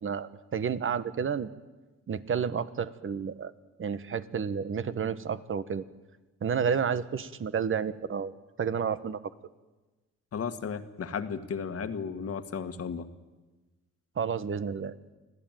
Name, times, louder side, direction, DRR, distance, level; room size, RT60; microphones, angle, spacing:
voice 1, 0.0-1.5 2.1-3.5 3.8-5.8 6.4-8.3 8.6-9.2 14.2-15.0, right 7 dB, 45° right, 13 dB, 1.2 m, -30 dB
voice 2, 10.3-13.1, left 6 dB, 50° left, 9 dB, 1.7 m, -34 dB
24.5 x 15.5 x 9.2 m, 1.2 s
cardioid pair, 90°, 30 cm